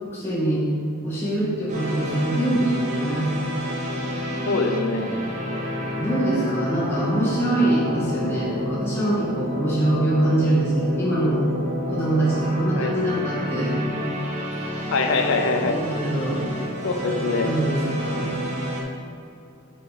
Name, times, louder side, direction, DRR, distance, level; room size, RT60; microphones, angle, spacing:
voice 1, 0.1-0.6 1.0-3.3 4.0-4.1 4.4-5.1 6.0-11.4 11.9-13.7 15.6-16.4 17.0-17.1 17.5-18.4, right 1 dB, 10° left, -9 dB, 1.5 m, -24 dB
sound 1, 1.7-18.8, equal, 35° right, 1.0 m, -30 dB
voice 2, 4.5-5.2 12.7-13.0 14.9-15.8 16.8-17.6, left 3 dB, 60° left, 5 dB, 0.5 m, -24 dB
6.7 x 4.0 x 5.1 m, 2.7 s
head